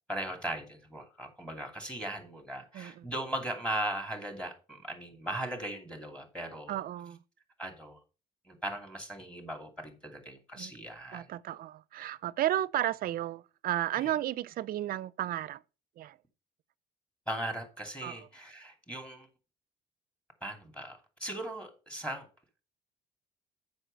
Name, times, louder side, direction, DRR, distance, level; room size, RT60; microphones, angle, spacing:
voice 1, 0.1-6.8 7.6-8.0 8.5-11.3 14.0-14.2 17.3-19.3 20.4-22.3, right 1 dB, 5° left, 2.6 m, -38 dB
voice 2, 2.7-3.1 6.7-7.2 10.6-10.7 11.1-15.6 16.0-16.2 18.0-18.2, right 13 dB, 60° right, 0.5 m, -33 dB
7.8 x 5.4 x 5.2 m
cardioid pair, 110°, 17 cm